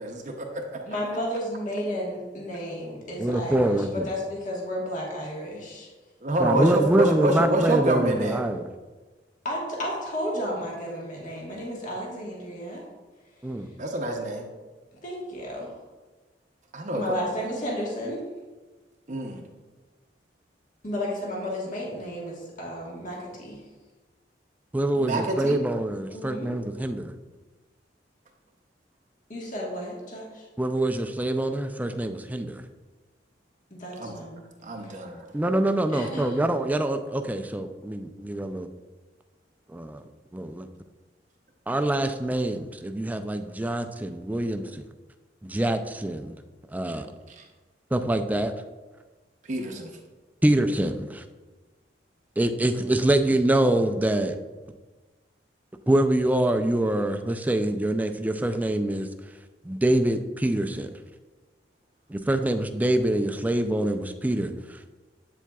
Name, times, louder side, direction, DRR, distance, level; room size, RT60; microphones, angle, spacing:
voice 1, 0.0-0.8 6.2-8.4 13.8-14.5 16.7-17.0 19.1-19.4 25.0-25.6 34.0-34.2 34.6-35.3 47.4-47.5 49.5-50.0, right 1 dB, 45° right, 2 dB, 0.6 m, -27 dB
voice 2, 0.8-5.9 9.4-12.8 15.0-15.7 16.9-18.2 20.8-23.6 26.1-26.5 29.3-30.5 33.7-34.4 34.8-34.9 35.9-36.4, equal, 45° left, -3 dB, 1.4 m, -33 dB
voice 3, 3.2-4.1 6.4-8.7 13.4-13.7 24.7-27.1 30.6-32.6 35.3-38.7 39.7-40.0 40.3-40.7 41.7-44.8 45.4-46.4 46.7-47.1 47.9-48.5 50.4-51.2 52.4-54.4 55.9-59.1 59.6-60.9 62.1-64.9, right 1 dB, 10° right, 7 dB, 0.3 m, -25 dB
7.9 x 7.3 x 2.3 m, 1.3 s
head